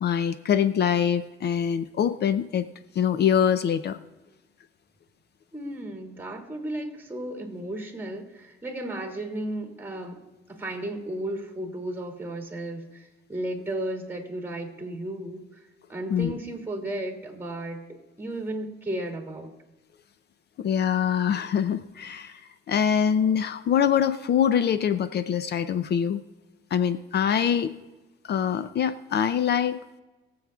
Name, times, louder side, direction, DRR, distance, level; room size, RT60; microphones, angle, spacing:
voice 1, 0.0-2.7 2.9-4.0 16.1-16.3 20.6-22.4 22.7-26.2 26.7-27.7 28.2-29.8, left 8 dB, 55° left, 11 dB, 0.6 m, -24 dB
voice 2, 5.5-10.2 10.5-15.6 15.9-19.5, right 1 dB, 10° right, 3 dB, 2.6 m, -34 dB
23.0 x 7.8 x 2.4 m, 1.2 s
cardioid pair, 90°, 20 cm